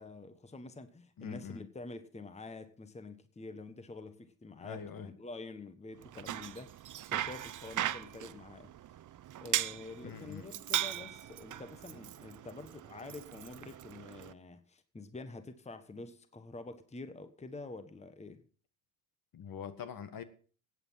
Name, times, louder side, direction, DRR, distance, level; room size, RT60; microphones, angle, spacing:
voice 1, 0.0-8.7 9.4-18.4, left 3 dB, 15° left, 1.4 m, -47 dB
voice 2, 1.2-1.6 4.6-5.1 10.0-10.5 19.3-20.2, left 7 dB, 45° left, 1.8 m, -44 dB
Bicycle, 6.0-14.3, right 12 dB, 40° right, 0.9 m, -39 dB
16.5 x 8.7 x 5.7 m
hypercardioid pair, 65°, 47 cm